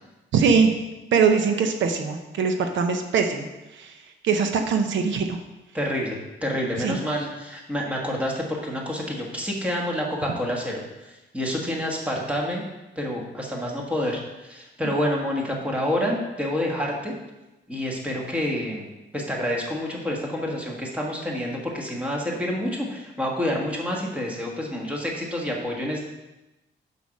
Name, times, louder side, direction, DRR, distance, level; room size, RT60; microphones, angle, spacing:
voice 1, 0.3-0.7 1.1-3.5 3.7-3.9 4.2-5.4 6.8-7.0, right 5 dB, 80° right, 6 dB, 0.9 m, -22 dB
voice 2, 5.7-12.6 13.0-17.1 17.7-18.9 19.1-26.0, left 1 dB, 5° right, -1 dB, 1.5 m, -28 dB
7.1 x 6.0 x 6.4 m, 1.0 s
wide cardioid pair, 175°, 19 cm